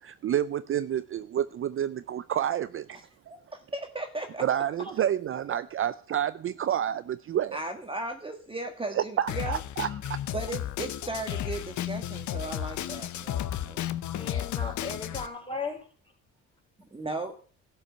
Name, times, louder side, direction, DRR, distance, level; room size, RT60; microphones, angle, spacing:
voice 1, 0.0-3.1 4.4-7.6 8.9-10.2, right 10 dB, 45° right, 0.5 m, -29 dB
voice 2, 3.5-4.4 7.5-9.6 10.3-13.8 16.9-17.3, right 2 dB, 20° right, 1.6 m, -36 dB
Drum kit, 9.3-15.3, left 11 dB, 70° left, 0.8 m, -33 dB
voice 3, 14.2-15.9 17.3-17.4, left 4 dB, 15° left, 4.0 m, -36 dB
12.5 x 5.5 x 8.4 m
cardioid pair, 90°, 30 cm